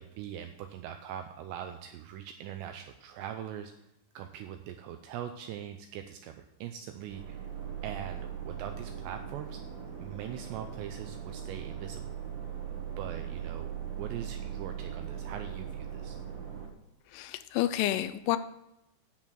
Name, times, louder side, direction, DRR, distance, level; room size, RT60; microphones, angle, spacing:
voice 1, 0.0-3.7 4.2-7.5 7.8-9.6 10.0-12.1 13.0-16.2, right 10 dB, 85° right, 7 dB, 2.5 m, -42 dB
sound 1, 7.1-16.7, right 8 dB, 60° right, 3.0 m, -40 dB
voice 2, 17.1-18.4, left 14 dB, 85° left, 12 dB, 3.0 m, -29 dB
10.0 x 7.4 x 6.2 m, 0.88 s
omnidirectional pair, 5.6 m